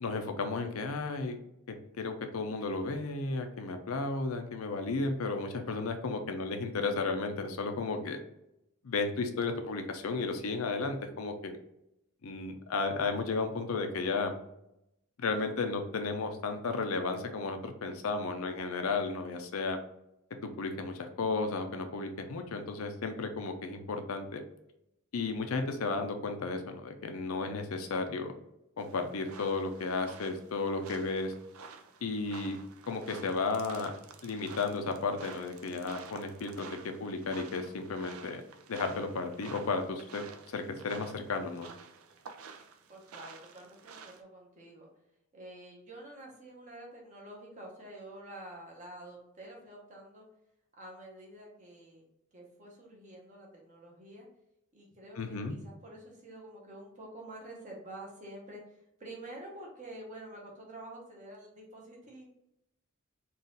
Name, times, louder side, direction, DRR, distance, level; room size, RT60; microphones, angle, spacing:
voice 1, 0.0-1.4 1.7-8.2 8.8-11.6 12.2-14.3 15.2-19.8 20.4-24.4 25.1-28.3 28.8-31.3 32.0-32.6 32.9-33.9 34.2-38.4 38.7-41.7 55.2-55.6, left 3 dB, 80° left, 6 dB, 0.6 m, -33 dB
sound 1, 28.8-44.2, right 5 dB, 80° right, 0.5 m, -50 dB
voice 2, 42.9-44.9 45.3-50.2 50.8-54.3 54.7-58.6 59.0-62.3, right 1 dB, 35° right, -1 dB, 1.0 m, -48 dB
4.0 x 2.5 x 3.8 m, 0.82 s
head